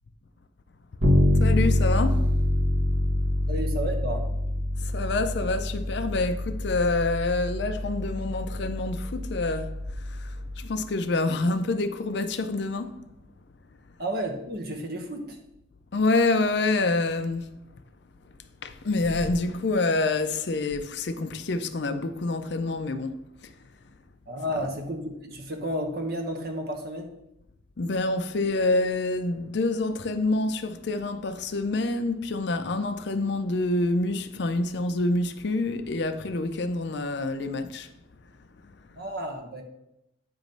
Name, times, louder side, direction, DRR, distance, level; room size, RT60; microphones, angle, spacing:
Bass guitar, 1.0-10.8, left 1 dB, 80° right, 1.5 m, -26 dB
voice 1, 1.3-2.3 4.8-13.0 15.9-17.5 18.6-23.5 27.8-37.9 38.6-38.7, left 2 dB, 60° left, 0.5 m, -27 dB
voice 2, 3.5-4.3 14.0-15.4 24.3-27.1 38.9-39.6, equal, 50° right, 1.0 m, -32 dB
8.8 x 3.0 x 5.3 m
head